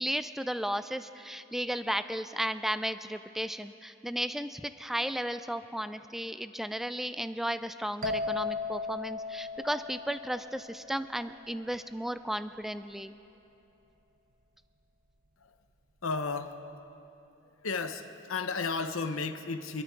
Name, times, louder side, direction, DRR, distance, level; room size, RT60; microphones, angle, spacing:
voice 1, 0.0-13.1, equal, ahead, 11 dB, 0.3 m, -34 dB
sound 1, 8.0-11.6, left 3 dB, 45° right, 1.0 m, -37 dB
voice 2, 16.0-16.6 17.6-19.8, left 4 dB, 80° left, 8 dB, 1.0 m, -33 dB
27.5 x 11.0 x 4.7 m, 2.9 s
head